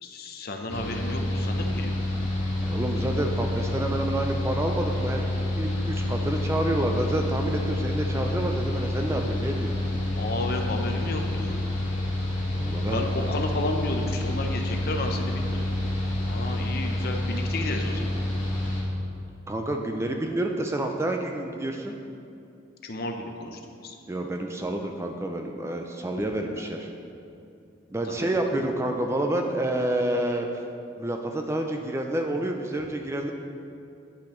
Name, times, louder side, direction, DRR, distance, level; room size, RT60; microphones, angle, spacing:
voice 1, 0.0-2.0 10.1-11.7 12.9-15.6 16.3-18.2 22.8-24.0 26.3-26.6 28.1-28.3, left 2 dB, 50° left, 4 dB, 0.6 m, -32 dB
Mechanical fan, 0.7-18.8, left 1 dB, 75° left, 1.6 m, -28 dB
voice 2, 2.6-9.7 12.6-13.3 19.5-21.9 24.1-26.9 27.9-30.6 31.0-33.3, right 1 dB, 15° right, 3 dB, 0.3 m, -29 dB
9.9 x 5.8 x 3.0 m, 2.7 s
head